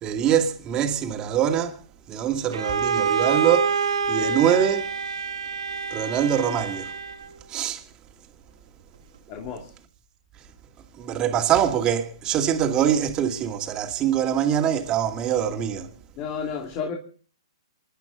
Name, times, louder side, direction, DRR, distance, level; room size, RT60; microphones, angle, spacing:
voice 1, 0.0-1.8 2.1-4.9 5.9-6.9 7.5-7.8 11.0-15.9, right 9 dB, 25° right, 2.4 m, -24 dB
Bowed string instrument, 2.5-7.3, right 6 dB, 75° right, 1.5 m, -26 dB
voice 2, 9.3-9.7 16.2-16.9, left 6 dB, 35° left, 2.8 m, -31 dB
27.5 x 11.5 x 3.9 m
hypercardioid pair, 120°, 3 cm